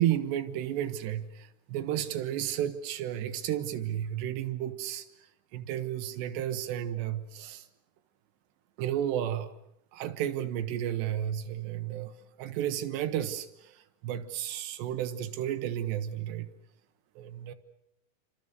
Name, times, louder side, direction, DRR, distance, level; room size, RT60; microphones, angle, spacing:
voice 1, 0.0-5.1 5.5-7.7 8.8-9.5 9.9-12.1 12.4-16.5 17.2-17.5, right 11 dB, 85° right, 9 dB, 3.5 m, -32 dB
28.5 x 25.0 x 6.7 m, 0.79 s
omnidirectional pair, 4.8 m